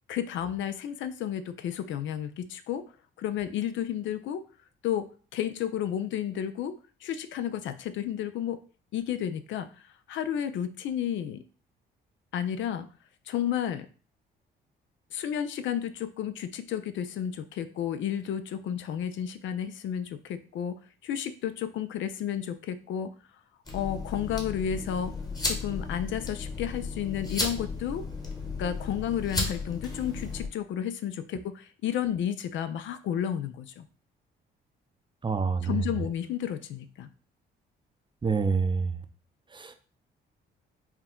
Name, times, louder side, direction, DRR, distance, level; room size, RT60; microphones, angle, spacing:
voice 1, 0.1-2.9 3.2-4.4 4.8-8.6 8.9-9.7 10.1-11.4 12.3-12.9 13.3-13.9 15.1-23.1 23.7-25.2 25.4-28.1 28.6-33.9 35.6-37.1, left 9 dB, 75° left, 11 dB, 0.5 m, -32 dB
sound 1, 23.7-30.5, left 3 dB, 20° left, 1.1 m, -34 dB
voice 2, 35.2-35.8 38.2-38.9 39.5-39.7, right 5 dB, 25° right, 8 dB, 0.5 m, -27 dB
4.5 x 2.3 x 3.6 m, 0.39 s
cardioid pair, 90°, 20 cm